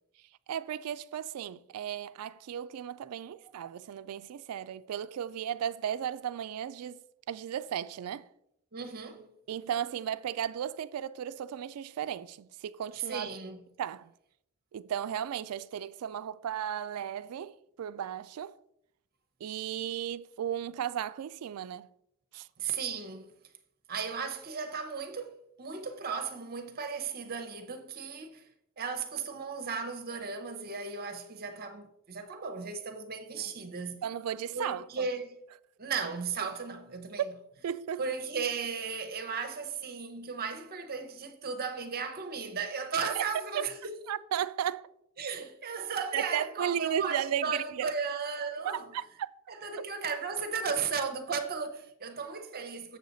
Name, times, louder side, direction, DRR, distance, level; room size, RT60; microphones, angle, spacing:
voice 1, 0.5-7.0 7.3-8.3 9.5-13.3 13.8-14.1 14.7-18.5 19.4-21.9 22.3-22.5 34.0-35.1 37.6-38.0 43.2-43.3 43.5-43.6 44.1-44.9 46.1-47.9 48.6-49.3, right 9 dB, 80° right, 0.3 m, -35 dB
voice 2, 8.7-9.3 12.9-13.6 22.6-23.2 23.9-28.5 28.8-34.0 34.5-35.4 35.8-37.3 38.0-44.0 45.2-48.9 49.5-53.0, right 5 dB, 45° right, 0.8 m, -35 dB
7.5 x 6.4 x 3.9 m
head